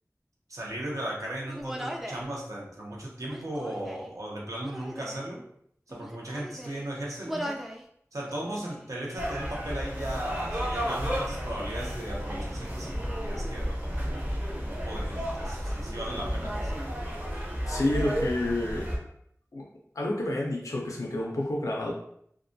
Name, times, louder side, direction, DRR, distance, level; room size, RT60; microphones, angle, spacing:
voice 1, 0.5-5.4 5.9-7.6 8.1-16.7, right 1 dB, 75° right, -3 dB, 0.7 m, -37 dB
Human voice, 1.5-2.3 3.2-4.1 4.6-5.2 5.9-6.9 7.2-7.8 8.2-8.9, equal, 5° right, 0.3 m, -39 dB
sound 1, 9.2-19.0, equal, 35° right, 0.6 m, -32 dB
voice 2, 17.7-19.1 19.5-19.7 20.0-21.9, left 1 dB, 85° left, -1 dB, 0.3 m, -29 dB
2.3 x 2.1 x 2.5 m, 0.69 s
wide cardioid pair, 40°, 6 cm